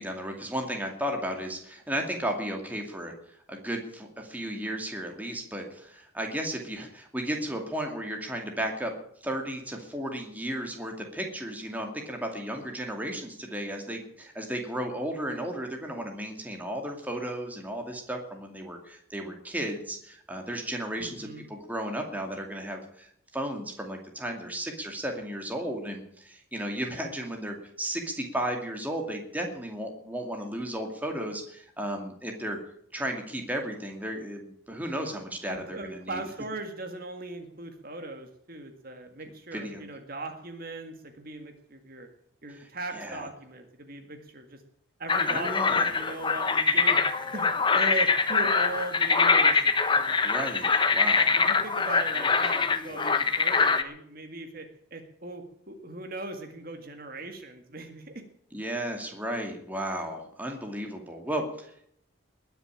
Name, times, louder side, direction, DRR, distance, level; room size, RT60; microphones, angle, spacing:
voice 1, 0.0-3.1 3.5-8.9 9.2-32.6 32.9-36.2 39.5-39.8 42.5-43.3 45.3-45.9 50.0-51.4 58.5-61.9, right 1 dB, 10° right, 2 dB, 2.3 m, -34 dB
voice 2, 21.0-21.4 35.5-42.1 42.4-44.6 45.0-50.2 50.7-50.8 51.4-58.2, right 2 dB, 45° right, 6 dB, 2.0 m, -39 dB
sound 1, 45.1-53.8, left 4 dB, 25° left, 0.9 m, -24 dB
20.5 x 6.9 x 8.8 m, 0.69 s
head